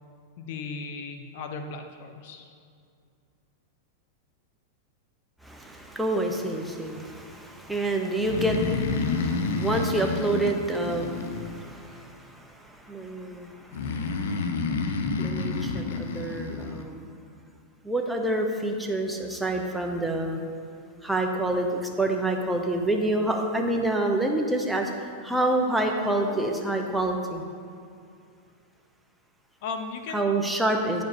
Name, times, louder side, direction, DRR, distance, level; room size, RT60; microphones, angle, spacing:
voice 1, 0.4-2.5 29.6-30.3, left 4 dB, 60° left, 6 dB, 1.0 m, -36 dB
voice 2, 5.4-14.1 14.7-14.9 15.2-17.0 17.8-20.4 21.0-27.4 30.1-31.0, right 1 dB, 5° right, 2 dB, 1.0 m, -28 dB
Breathing, 8.2-11.9 13.7-16.8, left 4 dB, 75° left, 0.7 m, -29 dB
8.9 x 5.3 x 6.1 m, 2.3 s
hypercardioid pair, 125°, 0 cm